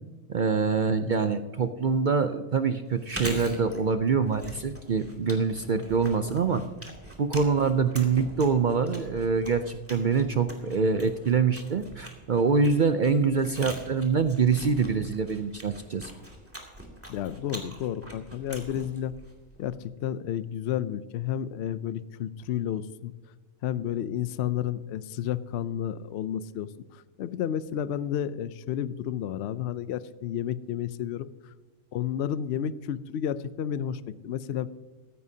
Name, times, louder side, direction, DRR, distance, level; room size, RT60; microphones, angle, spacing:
voice 1, 0.3-6.6 7.2-16.1, right 5 dB, 55° right, 9 dB, 0.5 m, -25 dB
Chewing mastication, 2.9-19.8, right 1 dB, 10° right, 2.3 m, -43 dB
voice 2, 17.1-19.1 19.6-23.1 23.6-26.7 27.2-31.3 31.9-34.7, left 10 dB, 65° left, 15 dB, 0.7 m, -31 dB
16.0 x 14.0 x 2.8 m, 1.3 s
omnidirectional pair, 1.4 m